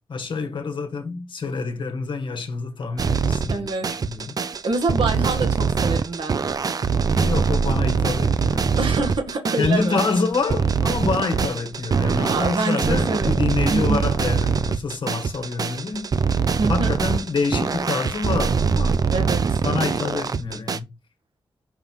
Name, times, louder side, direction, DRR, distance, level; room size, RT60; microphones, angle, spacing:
voice 1, 0.0-4.4 7.1-8.8 9.6-16.1 16.7-19.0 19.6-20.9, left 4 dB, 60° left, 1.6 m, -27 dB
sound 1, 3.0-20.8, right 5 dB, 45° right, 0.5 m, -23 dB
voice 2, 3.5-3.9 4.6-6.4 8.8-10.0 12.3-14.0 16.6-16.9 19.1-19.6, right 3 dB, 65° right, 1.7 m, -26 dB
5.5 x 5.5 x 4.6 m
wide cardioid pair, 170°, 9 cm